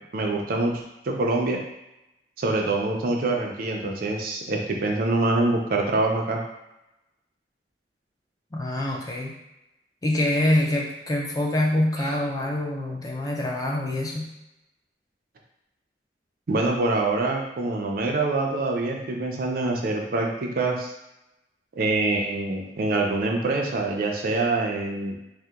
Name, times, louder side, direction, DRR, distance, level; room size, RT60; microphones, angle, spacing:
voice 1, 0.1-1.6 2.4-6.4 16.5-20.9 21.8-25.2, right 2 dB, 55° right, 1 dB, 0.4 m, -25 dB
voice 2, 8.5-9.3 10.0-14.3, left 1 dB, 20° left, -1 dB, 0.4 m, -25 dB
2.7 x 2.1 x 3.5 m, 0.91 s
head